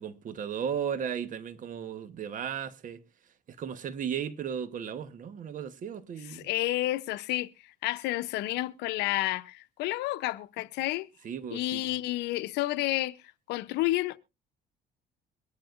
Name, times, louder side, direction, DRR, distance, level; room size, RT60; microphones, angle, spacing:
voice 1, 0.0-3.0 3.6-6.5 11.2-11.9, right 8 dB, 50° right, 1.1 m, -35 dB
voice 2, 6.3-11.1 11.5-13.1 13.5-14.2, left 17 dB, 85° left, 0.7 m, -30 dB
22.5 x 10.5 x 2.5 m
cardioid pair, 110°, 17 cm